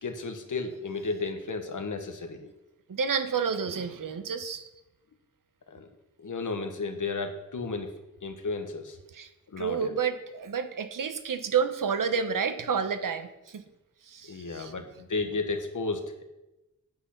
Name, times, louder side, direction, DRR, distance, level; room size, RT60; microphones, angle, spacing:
voice 1, 0.0-2.5 5.7-5.9 6.2-7.9 8.2-9.0 9.5-9.9 14.3-16.2, left 3 dB, 70° left, 6 dB, 1.4 m, -33 dB
voice 2, 2.9-4.6 9.1-9.3 9.6-13.6 14.1-14.7, right 6 dB, 75° right, 9 dB, 1.0 m, -30 dB
9.3 x 8.3 x 5.8 m, 0.96 s
cardioid pair, 60°, 32 cm